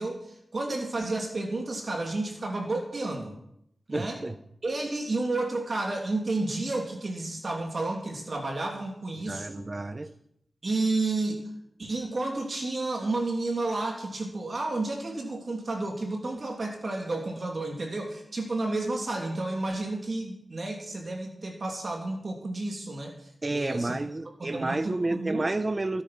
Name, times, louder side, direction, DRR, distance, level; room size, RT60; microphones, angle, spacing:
voice 1, 0.0-3.4 3.9-4.2 4.6-9.6 10.6-11.4 11.8-23.1 23.5-24.0 24.4-25.5, right 2 dB, 45° right, 2.9 m, -31 dB
voice 2, 3.9-4.4 9.2-10.1 23.4-26.0, right 2 dB, 25° right, 0.8 m, -30 dB
18.0 x 9.8 x 6.0 m
wide cardioid pair, 110°, 0 cm